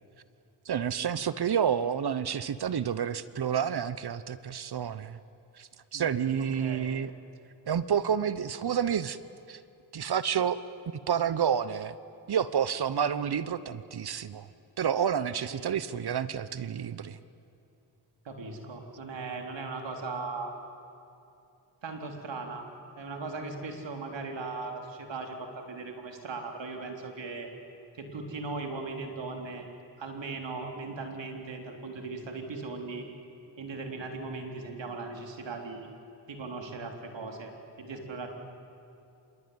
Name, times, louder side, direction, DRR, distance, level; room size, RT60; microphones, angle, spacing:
voice 1, 0.6-5.2 5.5-7.1 7.7-9.2 9.5-9.6 9.9-10.6 10.8-11.9 12.3-14.5 14.8-17.2, right 8 dB, 60° right, 15 dB, 1.0 m, -29 dB
voice 2, 5.9-6.9 15.5-15.7 18.2-20.5 21.8-22.7 23.0-27.5 27.9-29.7 30.0-33.1 33.6-35.9 36.3-37.5 37.8-38.3, right 3 dB, 75° right, 3 dB, 4.0 m, -38 dB
26.0 x 22.0 x 9.7 m, 2.7 s
cardioid pair, 55°, 45 cm